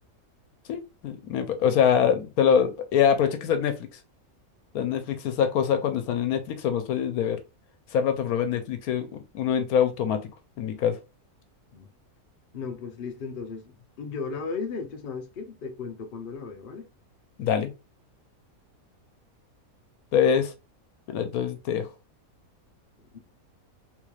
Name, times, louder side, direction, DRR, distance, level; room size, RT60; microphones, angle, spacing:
voice 1, 0.7-3.9 4.7-7.4 7.9-10.3 10.6-11.0 17.4-17.7 20.1-20.5 21.1-21.9, left 8 dB, 80° left, 1.1 m, -24 dB
voice 2, 12.5-16.9 23.1-23.2, left 5 dB, 50° left, 0.7 m, -36 dB
3.8 x 3.2 x 2.3 m
omnidirectional pair, 1.5 m